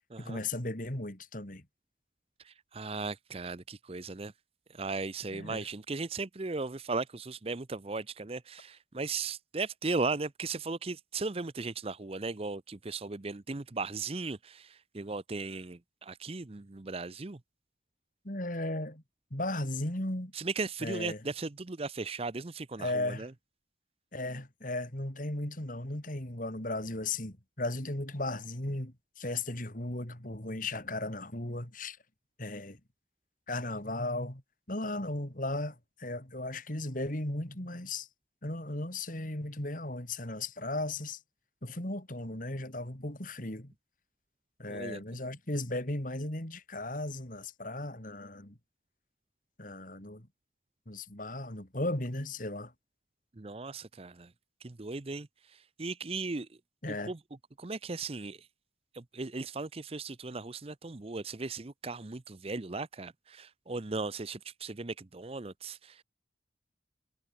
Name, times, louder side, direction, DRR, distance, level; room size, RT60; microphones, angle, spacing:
voice 1, 0.2-1.6 5.3-5.6 18.2-19.0 19.3-20.3 20.8-21.2 22.8-23.3 24.1-32.0 32.4-32.8 33.5-34.4 34.7-38.1 38.4-41.2 41.6-43.7 44.6-48.6 49.6-50.3 50.9-52.7 56.8-57.1, left 2 dB, 45° left, 3.4 m, -36 dB
voice 2, 2.4-4.3 4.7-17.4 20.3-23.3 44.7-45.0 53.4-54.3 54.6-55.3 55.8-56.5 56.9-57.2 57.6-58.4 58.9-66.0, right 3 dB, 30° right, 0.7 m, -37 dB
head